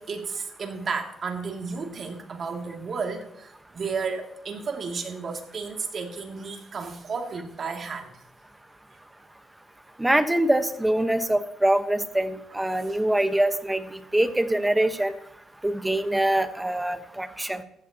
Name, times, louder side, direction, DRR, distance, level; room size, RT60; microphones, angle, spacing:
voice 1, 0.0-8.1 12.9-13.0, right 5 dB, 50° right, 2 dB, 2.6 m, -33 dB
voice 2, 10.0-15.1 15.6-17.6, right 1 dB, 10° right, 9 dB, 1.2 m, -24 dB
16.0 x 14.0 x 3.0 m, 0.75 s
cardioid pair, 90°, 0 cm